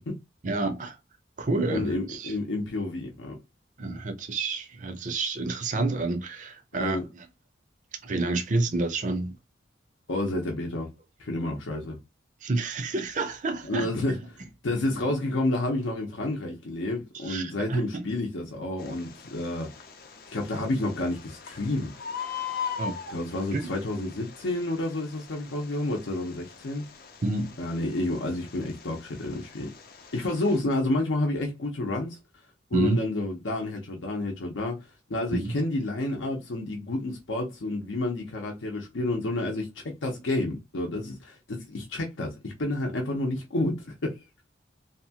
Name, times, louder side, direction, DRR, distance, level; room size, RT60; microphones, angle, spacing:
voice 1, 0.4-1.0 1.4-2.4 3.8-7.3 8.0-9.4 12.4-14.5 17.1-18.1 22.8-23.0 23.5-23.7 27.2-27.6 32.7-33.0 35.3-35.6, right 2 dB, 40° right, 0.5 m, -29 dB
voice 2, 1.7-3.4 6.8-7.0 10.1-10.9 11.2-12.0 13.7-14.1 14.6-19.7 20.3-21.9 23.1-26.8 27.6-29.7 30.1-32.2 32.7-44.2, left 2 dB, 85° left, 0.7 m, -30 dB
Bird, 18.8-30.6, left 7 dB, 50° left, 0.5 m, -41 dB
2.8 x 2.2 x 2.8 m
head